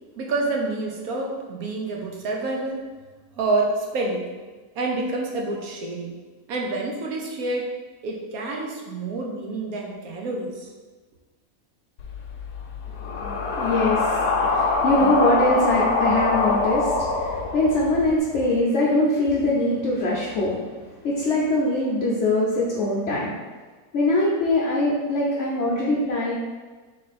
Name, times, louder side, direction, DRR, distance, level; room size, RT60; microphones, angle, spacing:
voice 1, 0.2-2.8 3.3-4.3 4.7-6.1 6.5-7.7 8.0-10.7, right 2 dB, 70° right, 0 dB, 1.2 m, -28 dB
sound 1, 12.0-18.1, left 3 dB, 80° left, 1.2 m, -24 dB
voice 2, 13.0-23.3 23.9-26.3, left 1 dB, 55° left, -5 dB, 0.9 m, -23 dB
3.8 x 3.3 x 4.1 m, 1.4 s
omnidirectional pair, 1.7 m